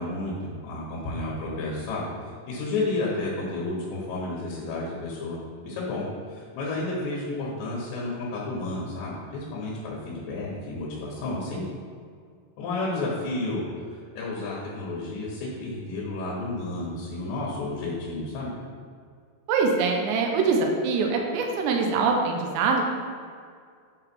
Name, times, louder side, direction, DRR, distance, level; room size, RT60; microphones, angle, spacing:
voice 1, 0.0-11.6 12.6-13.6 13.9-18.5, left 2 dB, 90° left, -4 dB, 3.4 m, -31 dB
voice 2, 19.5-22.8, right 4 dB, 85° right, 2 dB, 2.9 m, -23 dB
8.0 x 3.9 x 4.4 m, 2.1 s
omnidirectional pair, 4.9 m